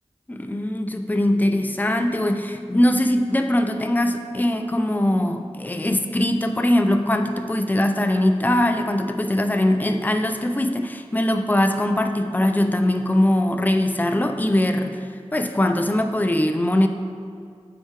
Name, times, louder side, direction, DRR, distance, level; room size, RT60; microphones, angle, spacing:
voice 1, 0.3-15.0 15.3-16.9, left 1 dB, 15° left, 6 dB, 0.5 m, -21 dB
10.0 x 4.6 x 3.4 m, 2.2 s
cardioid pair, 45°, 11 cm